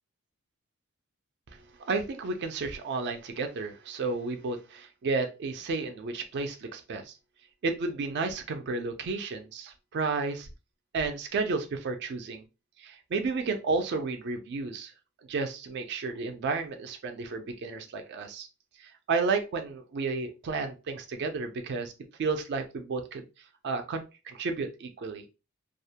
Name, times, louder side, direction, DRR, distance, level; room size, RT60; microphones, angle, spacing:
voice 1, 1.8-7.1 7.6-10.5 10.9-12.4 12.8-14.9 15.3-18.5 18.8-21.9 22.2-23.2 23.6-25.3, right 4 dB, 50° right, 6 dB, 0.4 m, -32 dB
2.3 x 2.1 x 2.7 m, 0.29 s
head